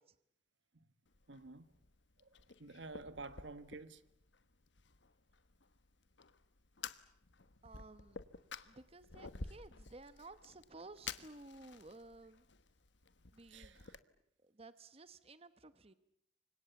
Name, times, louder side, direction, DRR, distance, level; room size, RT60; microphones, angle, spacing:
Fire, 1.0-14.0, left 5 dB, 70° left, 1.2 m, -52 dB
voice 1, 1.3-1.7 2.2-2.3 2.6-4.0 13.5-14.0, right 3 dB, 75° right, 1.5 m, -50 dB
voice 2, 7.6-8.2 8.6-12.5 13.3-13.8 14.4-15.9, right 2 dB, 30° right, 1.0 m, -55 dB
29.5 x 25.5 x 7.1 m
head